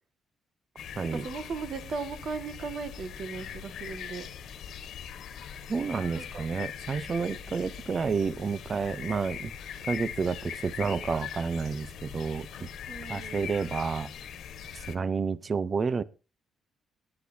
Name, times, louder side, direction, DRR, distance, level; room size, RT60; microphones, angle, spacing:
sound 1, 0.8-15.0, left 8 dB, 70° left, 1.3 m, -41 dB
voice 1, 1.1-4.3 6.2-6.4 12.9-13.5, right 4 dB, 60° right, 8 dB, 2.0 m, -37 dB
voice 2, 5.7-9.5 9.9-12.7 13.1-14.1 14.7-16.0, right 5 dB, 40° right, 17 dB, 0.8 m, -30 dB
22.0 x 9.9 x 2.8 m, 0.32 s
cardioid pair, 90°, 0 cm